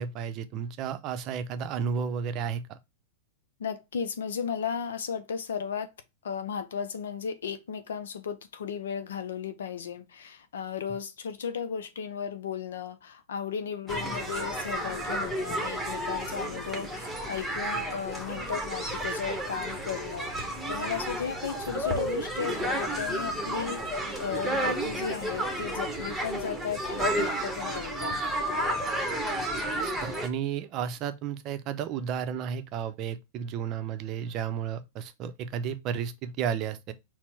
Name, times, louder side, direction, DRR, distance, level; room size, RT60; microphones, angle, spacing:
voice 1, 0.0-2.6 29.8-36.9, right 7 dB, 40° right, 0.6 m, -32 dB
voice 2, 3.6-5.9 6.2-28.2, left 7 dB, 75° left, 0.4 m, -35 dB
sound 1, 13.9-30.3, right 1 dB, 5° right, 1.0 m, -32 dB
4.2 x 2.1 x 4.1 m
hypercardioid pair, 100°, 0 cm